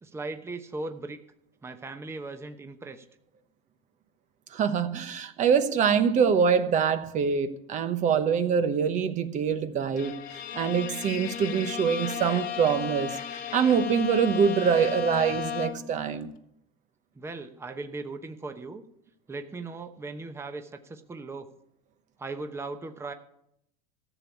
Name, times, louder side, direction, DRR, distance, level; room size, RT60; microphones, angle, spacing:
voice 1, 0.0-1.2 1.6-3.0 17.2-18.8 19.3-21.5 22.2-23.1, right 3 dB, 15° right, 7 dB, 1.0 m, -38 dB
voice 2, 4.5-16.3, right 6 dB, 40° right, 10 dB, 1.0 m, -25 dB
Bowed string instrument, 9.9-16.0, left 9 dB, 45° left, 1.3 m, -35 dB
14.5 x 6.9 x 8.5 m, 0.77 s
supercardioid pair, 105°, 19 cm